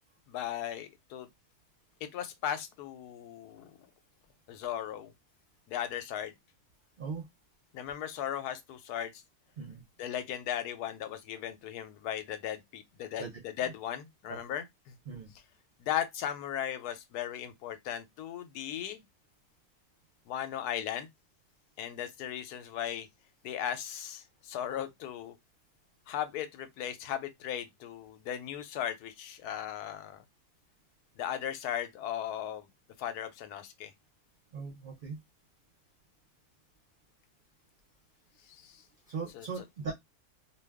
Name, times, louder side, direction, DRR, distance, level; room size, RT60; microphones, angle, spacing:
voice 1, 0.3-1.3 2.0-3.7 4.5-5.1 5.7-6.3 7.7-9.2 10.0-13.2 13.6-15.0 15.8-19.0 20.3-21.1 21.8-23.1 23.4-25.4 26.1-30.2 31.2-32.7 33.0-33.9 38.4-38.8 39.3-39.5, left 10 dB, 85° left, 1.1 m, -37 dB
voice 2, 34.5-35.2 39.1-39.9, right 5 dB, 70° right, 0.4 m, -39 dB
2.5 x 2.3 x 3.4 m
omnidirectional pair, 1.6 m